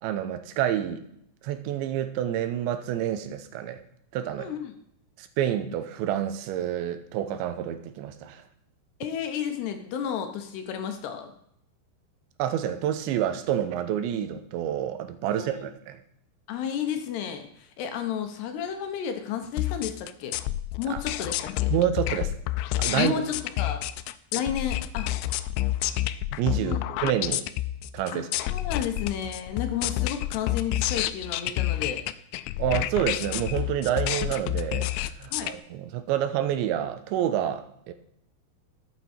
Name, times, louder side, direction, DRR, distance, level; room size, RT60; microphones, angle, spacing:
voice 1, 0.0-1.0 1.4-3.8 4.1-4.5 5.2-8.4 12.4-16.0 20.9-21.0 21.7-22.3 22.8-23.1 26.4-27.5 27.9-28.3 32.6-37.9, right 10 dB, 80° right, 10 dB, 3.1 m, -28 dB
voice 2, 4.4-4.7 9.0-11.3 15.3-15.7 16.5-20.4 20.8-21.7 22.9-23.8 24.3-25.1 26.6-26.8 28.1-32.1 35.3-35.5, left 8 dB, 75° left, 6 dB, 2.9 m, -32 dB
sound 1, 19.6-35.5, left 14 dB, 90° left, 2.9 m, -29 dB
13.5 x 8.4 x 4.3 m, 0.72 s
omnidirectional pair, 5.2 m